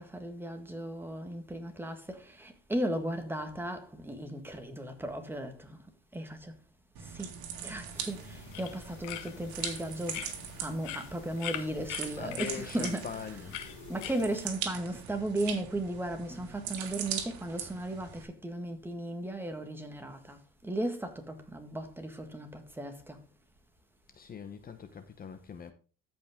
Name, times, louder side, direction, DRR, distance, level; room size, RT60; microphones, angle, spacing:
voice 1, 0.0-5.8 6.1-6.6 7.0-10.3 10.6-13.5 13.9-23.2, right 1 dB, 5° right, 1.7 m, -36 dB
sound 1, 7.0-18.2, right 8 dB, 75° right, 2.2 m, -41 dB
sound 2, 7.9-14.5, left 10 dB, 75° left, 1.6 m, -43 dB
voice 2, 12.2-13.6 24.1-25.7, left 6 dB, 30° left, 0.9 m, -42 dB
13.5 x 5.4 x 3.6 m
cardioid pair, 125°, 29 cm